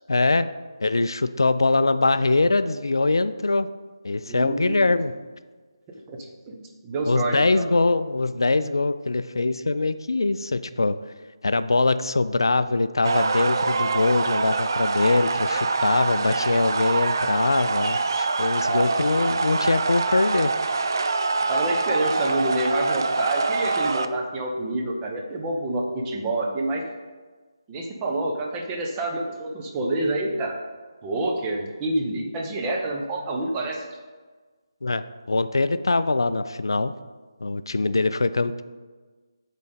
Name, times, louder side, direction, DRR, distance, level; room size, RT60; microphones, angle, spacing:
voice 1, 0.1-0.5 0.8-3.7 4.0-5.1 7.1-11.0 11.4-20.5 34.8-36.9 37.4-38.6, left 3 dB, 65° left, 13 dB, 0.3 m, -23 dB
voice 2, 4.3-5.0 6.1-7.7 18.7-18.9 21.5-26.8 27.7-30.6 31.0-33.8, right 2 dB, 15° right, 0 dB, 0.7 m, -28 dB
sound 1, 13.0-24.1, right 3 dB, 50° right, 0.4 m, -25 dB
8.4 x 4.1 x 4.0 m, 1.4 s
figure-of-eight pair, 150°, 2 cm